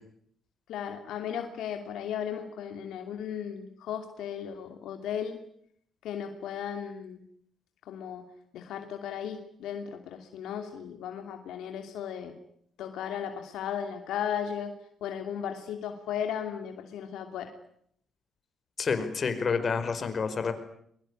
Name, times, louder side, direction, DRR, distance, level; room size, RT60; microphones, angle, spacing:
voice 1, 0.7-5.4 6.0-7.2 7.9-8.3 8.5-12.4 12.8-14.7 15.0-17.5, left 8 dB, 80° left, 6 dB, 2.8 m, -36 dB
voice 2, 18.8-20.5, left 5 dB, 45° left, 8 dB, 5.0 m, -28 dB
23.5 x 23.0 x 9.8 m, 0.68 s
cardioid pair, 90°, 0 cm